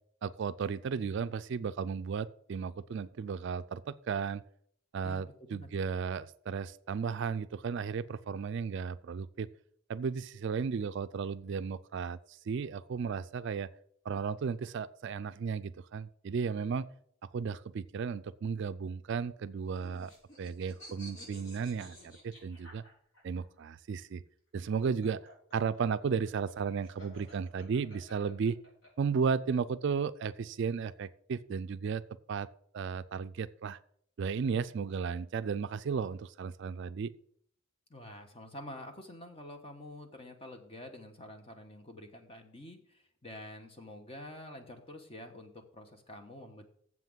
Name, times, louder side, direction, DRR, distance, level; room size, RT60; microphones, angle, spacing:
voice 1, 0.2-4.4 4.9-9.5 9.9-12.2 12.5-13.7 14.1-16.9 17.3-20.1 20.4-22.8 23.2-24.2 24.5-25.2 25.5-28.6 29.0-32.0 32.3-32.5 32.7-33.8 34.2-37.1, right 6 dB, 60° right, 14 dB, 0.3 m, -34 dB
voice 2, 5.0-5.7 37.9-46.7, left 1 dB, 25° left, 5 dB, 1.1 m, -48 dB
sound 1, 19.4-23.4 24.6-28.9, equal, 70° left, 4.2 m, -53 dB
7.5 x 5.8 x 7.4 m, 0.65 s
head